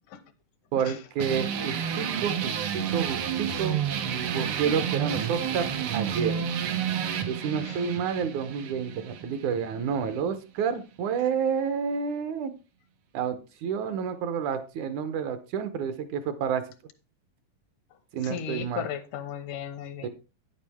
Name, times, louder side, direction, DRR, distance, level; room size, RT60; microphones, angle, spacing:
voice 1, 0.7-3.8 4.3-5.7 5.9-6.4 7.3-12.5 13.1-16.6 18.1-18.9 20.0-20.1, right 7 dB, 75° right, 10 dB, 2.1 m, -29 dB
sound 1, 1.2-10.2, right 8 dB, 90° right, 1.2 m, -30 dB
voice 2, 18.2-20.1, left 9 dB, 80° left, 9 dB, 2.5 m, -35 dB
9.4 x 8.3 x 3.4 m, 0.31 s
omnidirectional pair, 3.7 m